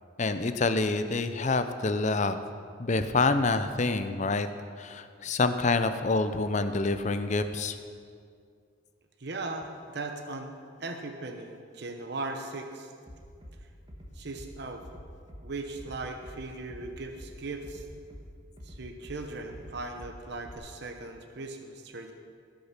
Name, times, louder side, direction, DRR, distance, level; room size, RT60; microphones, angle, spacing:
voice 1, 0.2-2.4 2.8-4.5 4.8-7.8, left 3 dB, 35° left, 10 dB, 0.6 m, -27 dB
voice 2, 9.2-10.5 10.8-12.9 14.1-14.8 15.4-17.9 18.6-22.1, right 2 dB, 55° right, 5 dB, 0.9 m, -38 dB
Bass drum, 13.1-13.5 13.9-14.5 14.8-15.4 15.8-16.4 16.7-17.3 17.6-18.2 18.6-19.2 19.5-20.1 20.4-20.5, equal, 25° right, 1.6 m, -46 dB
18.0 x 6.6 x 6.0 m, 2.2 s
head